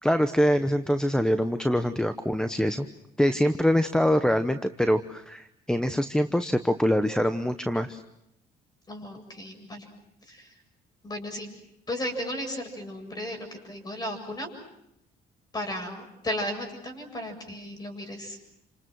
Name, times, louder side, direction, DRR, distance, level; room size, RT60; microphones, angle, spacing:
voice 1, 0.0-2.9 3.2-8.0, equal, 5° left, 7 dB, 0.9 m, -24 dB
voice 2, 8.9-9.9 10.2-10.5 11.0-11.5 11.9-14.5 15.5-18.5, left 1 dB, 25° left, 4 dB, 7.7 m, -35 dB
29.5 x 26.5 x 6.2 m, 0.81 s
cardioid pair, 110°, 17 cm